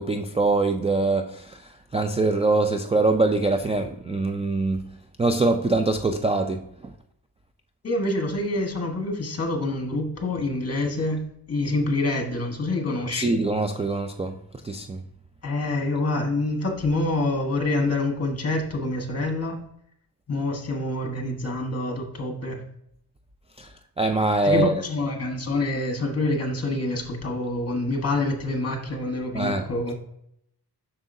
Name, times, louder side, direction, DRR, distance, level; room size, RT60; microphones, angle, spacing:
voice 1, 0.0-1.6 1.9-4.8 5.2-6.6 13.1-14.3 14.6-15.0 23.6-23.7 24.0-24.8 29.3-29.7, right 2 dB, 15° right, 0.3 m, -23 dB
voice 2, 7.8-11.2 11.5-13.3 15.4-19.6 20.3-22.6 24.4-29.9, left 2 dB, 40° left, 1.4 m, -26 dB
7.4 x 6.0 x 2.7 m
wide cardioid pair, 130°, 40 cm